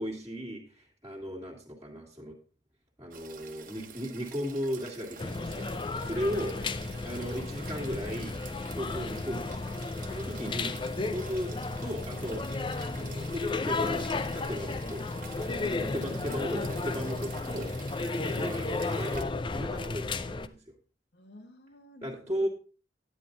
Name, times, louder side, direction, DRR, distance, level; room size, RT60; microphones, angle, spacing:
voice 1, 0.0-2.4 3.0-5.7 6.0-6.5 7.0-8.4 8.7-9.8 10.1-10.8 11.1-11.5 11.8-12.4 13.0-15.1 15.9-17.7 18.2-19.3 19.5-20.5 22.0-22.5, equal, 15° right, -5 dB, 2.0 m, -36 dB
sound 1, 3.1-19.2, right 6 dB, 50° right, 1.1 m, -49 dB
sound 2, 5.2-20.5, left 3 dB, 25° left, 0.5 m, -33 dB
voice 2, 6.0-7.1 15.5-16.7 18.0-18.6 21.1-22.5, left 1 dB, 65° left, 6 dB, 1.6 m, -48 dB
10.5 x 9.6 x 3.9 m, 0.36 s
head